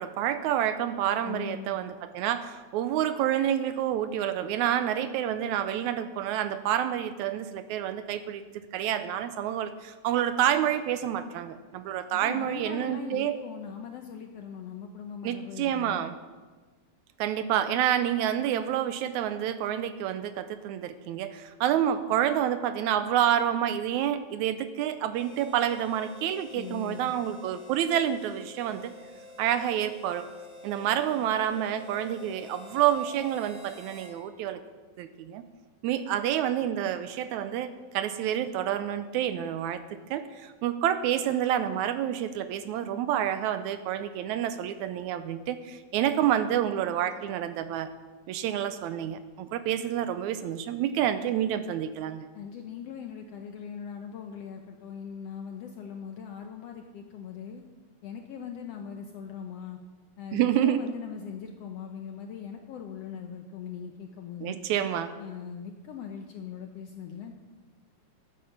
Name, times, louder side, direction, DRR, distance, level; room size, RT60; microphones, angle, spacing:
voice 1, 0.0-8.4 8.7-13.4 15.2-16.2 17.2-29.0 29.4-30.3 30.6-34.6 35.0-35.4 35.8-39.8 40.1-47.9 48.3-52.3 60.3-60.8 64.4-65.1, right 10 dB, 80° right, 11 dB, 1.8 m, -28 dB
voice 2, 1.2-1.8 12.1-16.0 26.5-27.1 52.3-57.6 58.0-59.8 60.2-64.6 65.2-67.3, left 7 dB, 75° left, 4 dB, 1.5 m, -40 dB
Harmonica, 25.1-34.2, left 2 dB, 55° right, 2.6 m, -49 dB
12.5 x 9.4 x 6.4 m, 1.3 s
omnidirectional pair, 3.6 m